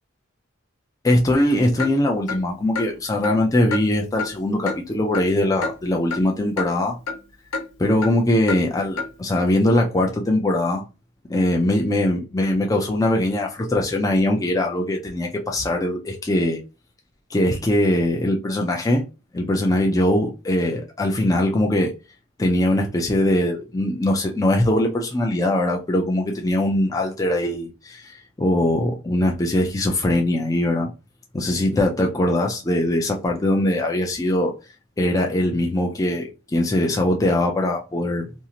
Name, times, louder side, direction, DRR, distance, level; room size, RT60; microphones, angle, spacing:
voice 1, 1.0-7.0 7.8-10.8 11.3-16.6 17.3-19.0 19.3-21.9 22.4-30.9 31.3-34.5 35.0-38.3, left 1 dB, 15° left, 0.3 m, -21 dB
Clock, 1.8-1.9 2.3-2.4 2.8-2.9 3.2-3.4 3.7-3.8 4.2-4.3 4.7-4.8 5.1-5.3 5.6-5.7 6.1-6.2 6.6-6.7 7.1-7.2 7.5-7.7 8.0-8.1 8.5-8.6 9.0-9.1, left 3 dB, 80° left, 0.7 m, -27 dB
2.6 x 2.4 x 2.8 m
head